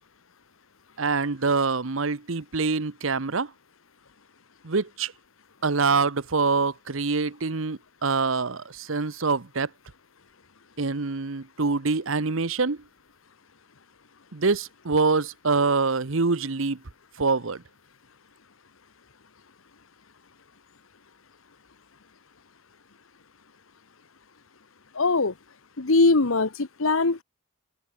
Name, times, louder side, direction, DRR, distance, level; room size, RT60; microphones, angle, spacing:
voice 1, 1.0-3.5 4.6-5.1 5.6-9.7 10.8-12.8 14.3-16.8 17.2-17.6, right 4 dB, 70° right, 1.0 m, -25 dB
voice 2, 24.9-25.3 25.8-27.2, left 3 dB, 75° left, 1.2 m, -21 dB
head